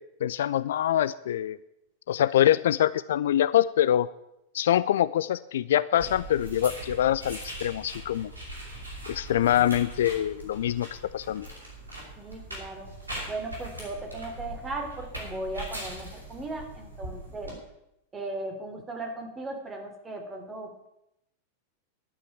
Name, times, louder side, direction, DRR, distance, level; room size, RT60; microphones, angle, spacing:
voice 1, 0.2-1.6 2.1-4.1 4.5-8.3 9.1-11.5, left 11 dB, 60° left, 17 dB, 0.4 m, -24 dB
sound 1, 5.9-17.5, right 1 dB, 80° right, 6.0 m, -41 dB
voice 2, 12.2-12.9 13.3-17.5 18.1-20.9, right 2 dB, 15° right, 3 dB, 3.3 m, -37 dB
11.0 x 8.8 x 9.2 m, 0.84 s
figure-of-eight pair, 90°, 0 cm